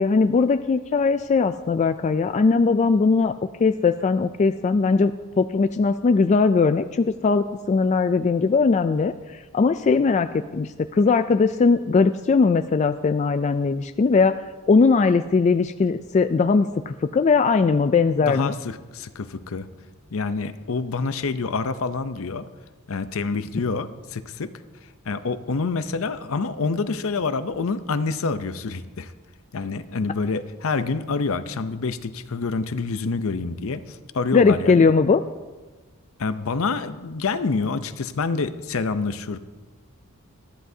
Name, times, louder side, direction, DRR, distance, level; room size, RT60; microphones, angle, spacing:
voice 1, 0.0-3.3 3.6-5.1 5.4-14.4 14.7-18.5 34.3-35.2, left 4 dB, 30° left, 9 dB, 0.3 m, -20 dB
voice 2, 18.2-19.7 20.1-22.5 22.9-24.5 25.1-29.1 29.5-34.9 36.2-39.4, left 4 dB, 65° left, 12 dB, 0.6 m, -27 dB
20.0 x 13.5 x 2.8 m, 1.3 s
head